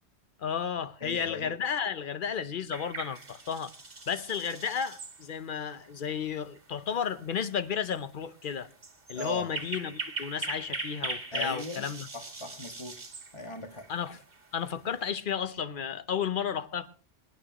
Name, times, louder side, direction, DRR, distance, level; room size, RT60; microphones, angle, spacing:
voice 1, 0.4-3.7 4.1-8.7 9.1-12.1 13.9-14.2 14.5-16.9, left 7 dB, 50° left, 0.9 m, -33 dB
voice 2, 1.0-1.5 9.1-9.5 11.3-11.8 12.1-12.9 13.3-13.9, left 2 dB, 25° left, 1.7 m, -39 dB
sound 1, 2.7-15.1, right 3 dB, 50° right, 2.1 m, -41 dB
26.5 x 9.4 x 3.0 m
omnidirectional pair, 1.2 m